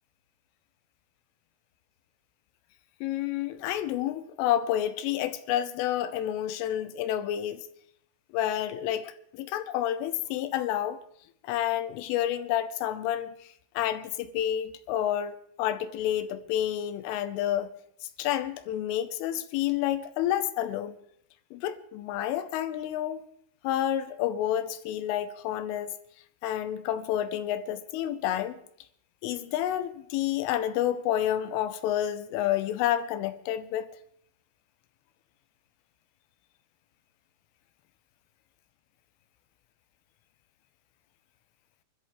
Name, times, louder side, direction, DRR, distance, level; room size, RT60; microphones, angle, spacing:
voice 1, 3.0-7.7 8.3-11.0 11.4-13.4 13.8-17.7 18.2-21.0 21.5-23.2 23.6-25.9 26.4-28.6 29.2-33.9, left 11 dB, 85° left, 3.3 m, -29 dB
25.5 x 13.0 x 3.2 m
omnidirectional pair, 5.9 m